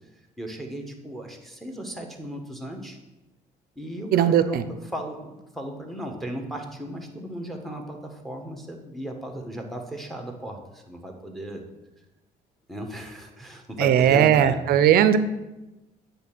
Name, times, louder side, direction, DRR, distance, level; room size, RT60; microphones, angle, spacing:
voice 1, 0.4-3.0 3.8-11.6 12.7-14.8, right 1 dB, ahead, 3 dB, 1.2 m, -36 dB
voice 2, 4.1-4.6 13.8-15.2, right 10 dB, 65° right, 12 dB, 0.5 m, -18 dB
8.2 x 3.3 x 6.1 m, 1.0 s
cardioid pair, 110°, 17 cm